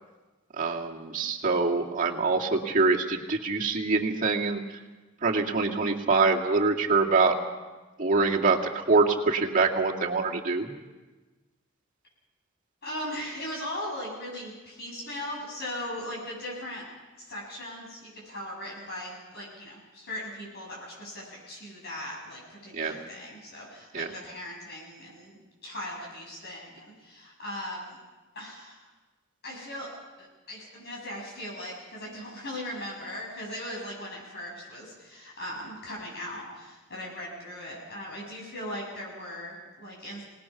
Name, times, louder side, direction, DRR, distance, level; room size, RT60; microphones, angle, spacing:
voice 1, 0.6-4.6 5.2-7.4 8.0-10.7 22.7-22.9 23.9-24.1, right 4 dB, 40° right, -1 dB, 2.2 m, -25 dB
voice 2, 12.8-16.8 17.2-28.0 28.3-28.8 29.4-40.2, left 1 dB, 55° left, -3 dB, 7.4 m, -39 dB
26.5 x 19.0 x 5.9 m, 1.2 s
head